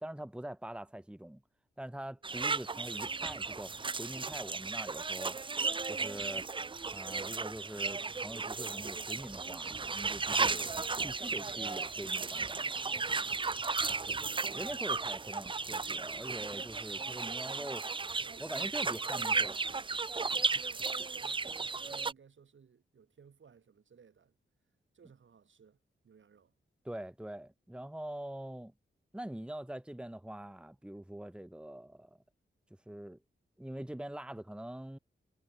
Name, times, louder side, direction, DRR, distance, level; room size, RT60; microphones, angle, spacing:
voice 1, 0.0-1.4 1.8-5.4 5.9-6.5 6.9-10.7 11.0-12.6 14.1-14.3 14.5-17.9 18.4-19.7 26.8-28.7 29.1-32.2 32.9-33.2 33.6-35.0, right 1 dB, 5° right, 1.8 m, -44 dB
sound 1, 2.2-22.1, right 4 dB, 25° right, 0.5 m, -35 dB
voice 2, 11.4-11.8 13.0-13.6 18.2-19.1 20.2-24.3 24.9-25.8 26.0-26.5, right 6 dB, 65° right, 6.1 m, -60 dB
wide cardioid pair, 170°, 21 cm